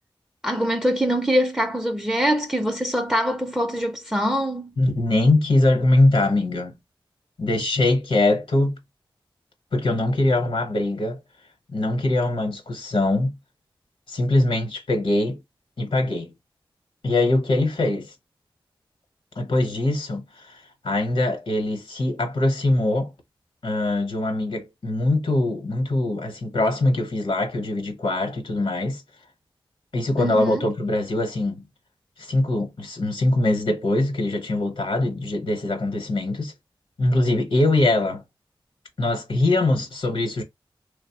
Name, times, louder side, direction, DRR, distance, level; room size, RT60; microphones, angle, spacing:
voice 1, 0.4-4.7 30.2-30.6, equal, 5° right, 0.5 m, -23 dB
voice 2, 4.8-6.7 7.4-8.8 9.7-11.2 11.7-13.3 14.1-15.4 15.8-16.3 17.0-18.1 19.4-23.1 23.6-29.0 29.9-31.7 32.2-36.5 37.0-38.2 39.0-40.4, left 2 dB, 75° left, 0.9 m, -22 dB
3.0 x 2.0 x 2.8 m
cardioid pair, 50°, 9 cm